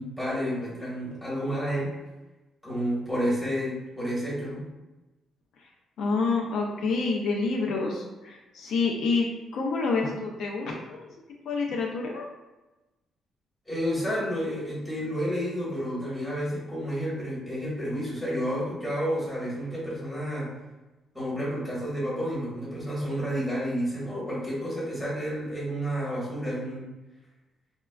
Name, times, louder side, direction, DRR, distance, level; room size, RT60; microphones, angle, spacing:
voice 1, 0.0-1.9 2.6-4.7 13.7-20.5 21.1-26.9, equal, ahead, -7 dB, 1.2 m, -30 dB
voice 2, 6.0-11.1 11.4-12.3, left 4 dB, 70° left, -1 dB, 0.4 m, -28 dB
3.5 x 2.2 x 2.3 m, 1.1 s
cardioid pair, 135°, 0 cm